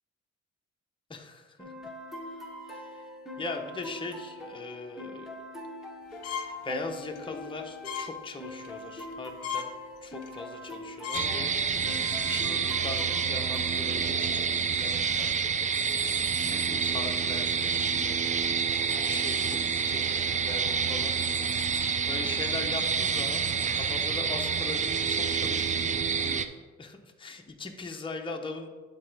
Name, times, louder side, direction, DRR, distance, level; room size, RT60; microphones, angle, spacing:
voice 1, 1.1-1.7 2.7-3.0 3.4-5.3 6.6-9.7 10.0-15.8 16.3-18.4 19.0-21.7 22.0-23.5 23.8-28.7, left 3 dB, 15° left, 3 dB, 0.8 m, -40 dB
sound 1, 1.6-13.6, left 1 dB, ahead, 1.3 m, -43 dB
sound 2, 6.2-6.6 7.0-7.2 7.8-8.1 8.5-8.7 9.1-9.2 9.4-9.7 10.2-10.4 10.7-10.8 11.0-11.3 11.7-12.0, left 7 dB, 55° left, 0.9 m, -35 dB
sound 3, 11.1-26.5, right 6 dB, 25° right, 0.4 m, -28 dB
11.5 x 3.9 x 3.4 m, 1.3 s
cardioid pair, 90°, 30 cm